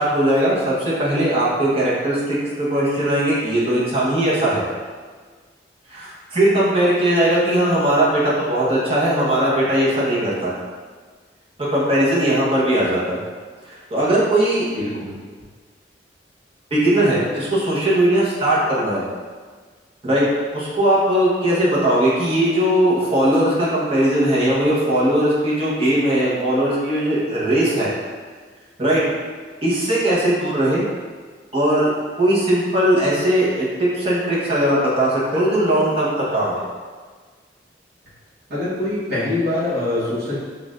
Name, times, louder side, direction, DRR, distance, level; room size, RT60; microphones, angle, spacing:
voice 1, 0.0-4.6 5.9-10.6 11.7-13.2 13.6-14.7 16.7-19.0 20.0-20.2 20.5-27.9 28.8-29.0 29.6-30.8 31.5-31.9 32.2-36.6, right 1 dB, 30° right, -7 dB, 1.0 m, -19 dB
voice 2, 14.8-15.1 38.5-40.4, left 2 dB, 60° right, -12 dB, 1.2 m, -24 dB
6.2 x 2.5 x 2.5 m, 1.5 s
head